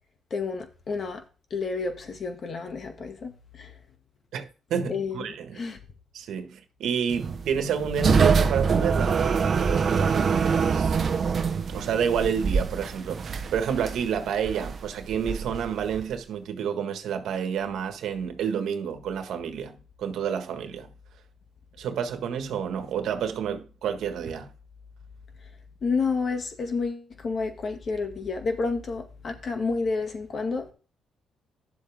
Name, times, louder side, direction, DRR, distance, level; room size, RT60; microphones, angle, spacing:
voice 1, 0.3-1.2 1.5-3.7 4.9-5.8 25.8-30.7, left 4 dB, 45° left, 2.1 m, -30 dB
voice 2, 4.3-5.6 6.1-11.2 11.7-20.9 21.8-24.5, right 7 dB, 75° right, 1.6 m, -29 dB
sound 1, 7.1-16.2, right 5 dB, 45° right, 0.9 m, -25 dB
10.5 x 7.2 x 3.6 m
cardioid pair, 90°, 0 cm